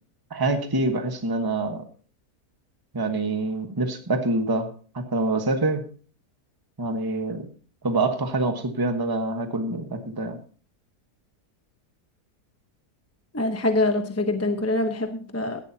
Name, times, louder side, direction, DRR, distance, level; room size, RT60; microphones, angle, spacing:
voice 1, 0.3-1.8 2.9-5.8 6.8-7.5 7.8-10.4, right 2 dB, 15° right, 6 dB, 1.2 m, -26 dB
voice 2, 13.3-15.6, left 2 dB, 15° left, 6 dB, 0.7 m, -24 dB
17.0 x 11.5 x 2.8 m, 0.41 s
omnidirectional pair, 1.7 m